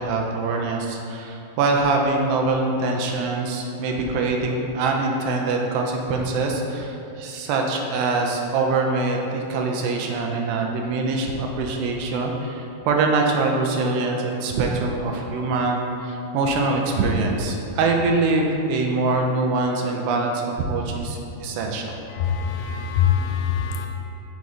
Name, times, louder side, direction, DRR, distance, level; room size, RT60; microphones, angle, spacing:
voice 1, 0.0-22.0, right 3 dB, 80° right, 1 dB, 2.4 m, -24 dB
voice 2, 22.4-23.9, left 8 dB, 80° left, 3 dB, 2.1 m, -23 dB
6.4 x 4.1 x 4.8 m, 2.8 s
omnidirectional pair, 4.2 m